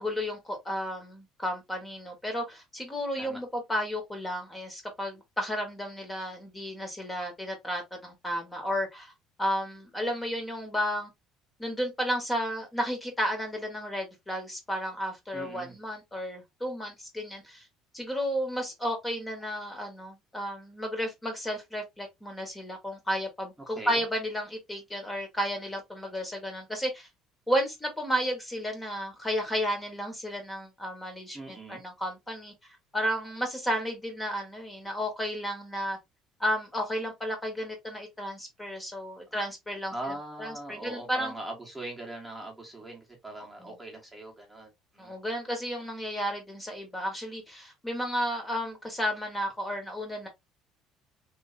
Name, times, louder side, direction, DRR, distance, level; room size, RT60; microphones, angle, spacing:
voice 1, 0.0-9.1 9.4-11.1 11.6-17.7 17.9-27.1 27.5-32.5 32.9-36.0 36.4-39.9 40.4-41.3 43.6-43.7 45.0-50.3, equal, 10° left, 1.4 m, -32 dB
voice 2, 15.3-15.7 23.6-24.0 31.3-31.8 39.9-45.1, right 1 dB, 10° right, 1.2 m, -41 dB
3.2 x 3.0 x 2.6 m
cardioid pair, 125°, 0 cm